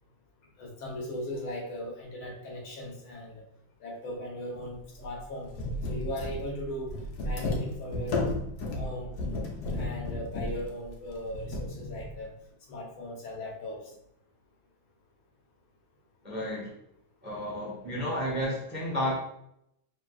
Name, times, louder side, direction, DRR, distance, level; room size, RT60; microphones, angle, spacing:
voice 1, 0.6-3.4 3.8-5.5 5.9-6.9 7.3-8.2 8.7-9.1 9.7-12.3 12.7-13.8, left 1 dB, 85° left, -2 dB, 1.9 m, -38 dB
sound 1, 4.5-4.7 5.0-5.1 5.5-12.2, left 2 dB, 60° left, 1.2 m, -33 dB
voice 2, 16.2-16.7 17.2-19.1, equal, 10° right, -4 dB, 0.4 m, -32 dB
5.1 x 3.6 x 2.3 m, 0.76 s
omnidirectional pair, 2.2 m